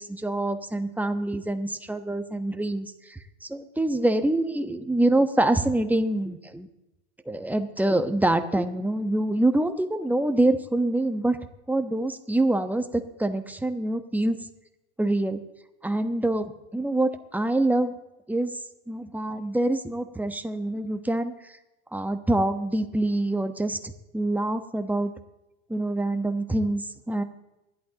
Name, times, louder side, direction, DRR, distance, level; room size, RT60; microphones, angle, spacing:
voice 1, 0.0-6.7 7.3-11.4 11.7-14.4 15.0-15.4 15.8-17.9 18.3-18.6 18.9-21.6 21.9-25.1 25.7-27.2, right 1 dB, 5° right, 7 dB, 1.1 m, -25 dB
28.5 x 11.5 x 3.0 m, 0.94 s
hypercardioid pair, 95°, 44 cm